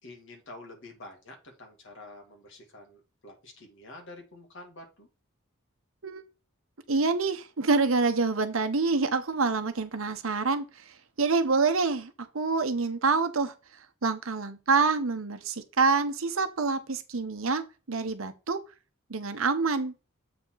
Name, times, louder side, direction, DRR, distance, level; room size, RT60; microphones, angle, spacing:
voice 1, 0.0-5.1, left 2 dB, 60° left, 2.5 m, -48 dB
voice 2, 6.9-10.6 11.2-13.5 14.0-18.6 19.1-19.9, right 4 dB, 70° right, 0.9 m, -26 dB
7.8 x 4.4 x 3.9 m
head